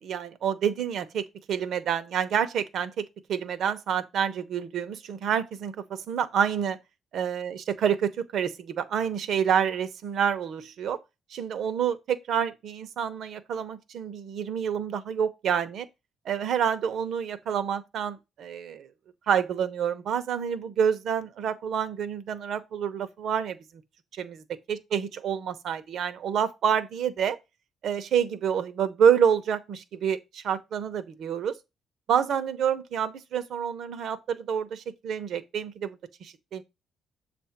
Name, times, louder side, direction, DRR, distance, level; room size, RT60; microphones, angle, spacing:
voice 1, 0.0-6.8 7.1-11.0 11.3-15.9 16.2-18.9 19.3-23.6 24.1-27.4 27.8-31.6 32.1-36.6, right 8 dB, 70° right, 0.8 m, -28 dB
7.2 x 2.6 x 5.8 m
cardioid pair, 90°, 0 cm